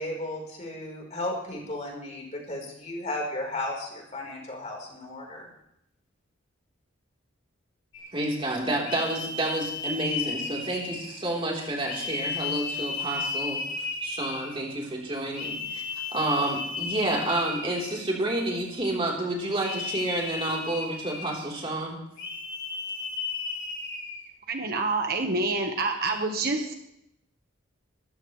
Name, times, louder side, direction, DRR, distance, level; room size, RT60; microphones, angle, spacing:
voice 1, 0.0-5.5, left 1 dB, 35° left, 0 dB, 4.3 m, -34 dB
sound 1, 7.9-8.2 8.8-11.3 11.9-14.6 15.3-18.1 19.6-21.5 22.2-24.3, left 4 dB, 65° left, 3.8 m, -34 dB
voice 2, 8.1-15.8 16.1-22.0, right 1 dB, 25° right, -2 dB, 3.8 m, -29 dB
voice 3, 24.5-26.7, right 3 dB, 50° right, 4 dB, 1.4 m, -27 dB
22.0 x 14.5 x 3.3 m, 0.79 s
head